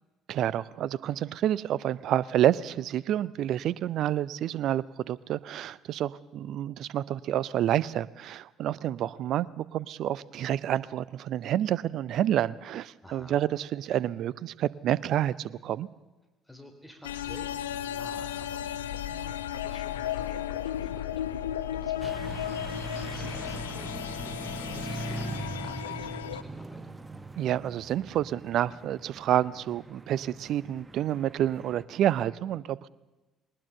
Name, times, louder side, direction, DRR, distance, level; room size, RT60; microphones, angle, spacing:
voice 1, 0.3-15.9 27.4-32.9, right 11 dB, 55° right, 21 dB, 0.6 m, -29 dB
voice 2, 13.0-13.4 16.4-26.9, left 1 dB, 5° left, 5 dB, 3.0 m, -51 dB
sound 1, 17.0-26.4, left 10 dB, 80° left, 0.7 m, -34 dB
sound 2, 22.0-31.8, right 2 dB, 20° right, 1.1 m, -41 dB
21.0 x 19.5 x 6.8 m, 1.1 s
figure-of-eight pair, 55°, 0 cm